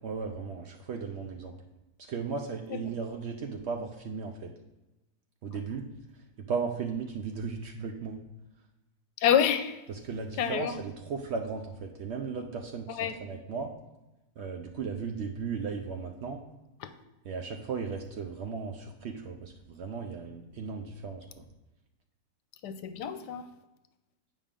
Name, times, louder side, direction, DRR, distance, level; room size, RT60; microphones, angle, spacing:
voice 1, 0.0-1.6 2.0-4.5 5.4-5.9 6.1-8.2 9.9-13.7 14.4-16.4 17.2-21.5, right 5 dB, 80° right, 3 dB, 0.6 m, -36 dB
voice 2, 9.2-9.8 10.4-10.7 12.9-13.2 16.8-16.9 22.6-23.5, left 9 dB, 80° left, 10 dB, 1.2 m, -27 dB
8.5 x 5.3 x 3.6 m, 1.0 s
omnidirectional pair, 1.9 m